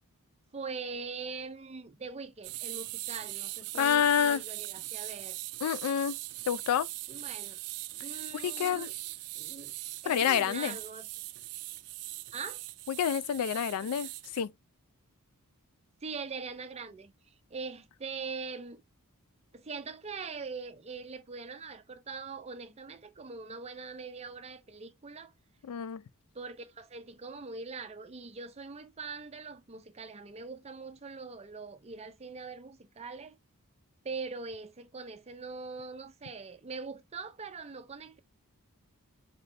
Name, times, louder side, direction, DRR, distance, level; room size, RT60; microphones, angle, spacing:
voice 1, 0.5-5.4 7.1-7.6 8.0-8.9 9.4-9.7 10.0-11.1 12.3-12.6 13.8-13.9 16.0-18.8 19.5-25.3 26.3-33.4 34.0-38.2, right 4 dB, 30° right, 0.5 m, -42 dB
sound 1, 2.4-14.4, right 18 dB, 85° right, 0.4 m, -40 dB
voice 2, 3.7-4.4 5.6-6.2 6.5-6.9 8.4-8.9 10.1-10.8 12.9-14.5 25.6-26.0, left 9 dB, 80° left, 0.3 m, -28 dB
5.1 x 3.2 x 2.6 m
head